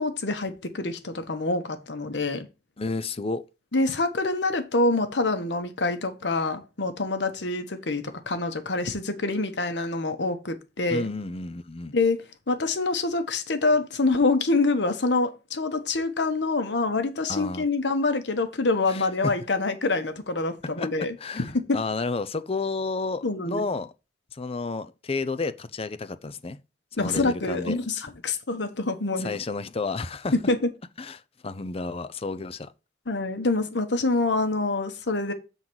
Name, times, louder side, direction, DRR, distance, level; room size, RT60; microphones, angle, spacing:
voice 1, 0.0-2.5 3.7-11.1 11.9-21.1 21.5-21.8 23.2-23.6 27.0-29.3 30.3-30.6 33.1-35.3, left 3 dB, 85° left, 1.2 m, -26 dB
voice 2, 2.8-3.4 10.9-11.9 17.3-17.6 18.9-19.3 20.8-23.9 24.3-26.6 27.0-27.8 29.2-30.3 31.0-32.7, left 3 dB, 35° left, 0.6 m, -31 dB
7.2 x 4.0 x 6.2 m
head